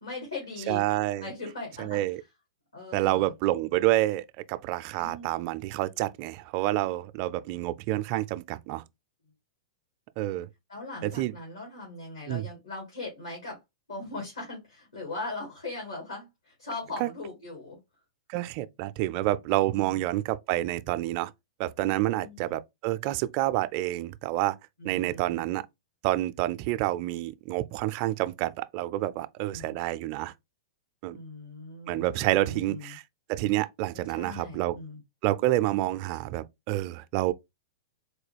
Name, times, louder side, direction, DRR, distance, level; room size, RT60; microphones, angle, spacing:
voice 1, 0.0-0.8 1.2-2.0 2.7-3.3 5.0-5.4 10.7-13.6 13.9-17.8 19.7-20.0 22.1-22.6 24.8-25.5 29.5-29.8 31.1-33.0 33.9-35.0, left 2 dB, 90° left, 1.9 m, -40 dB
voice 2, 0.7-1.3 1.8-2.2 2.9-8.8 10.2-10.5 11.0-11.3 12.3-12.5 17.0-17.1 18.3-21.3 21.6-24.6 24.8-25.6 26.0-30.3 31.0-31.2 31.9-33.0 33.3-34.8 35.2-37.3, right 16 dB, 45° right, 0.3 m, -28 dB
4.2 x 2.3 x 3.2 m
hypercardioid pair, 115°, 3 cm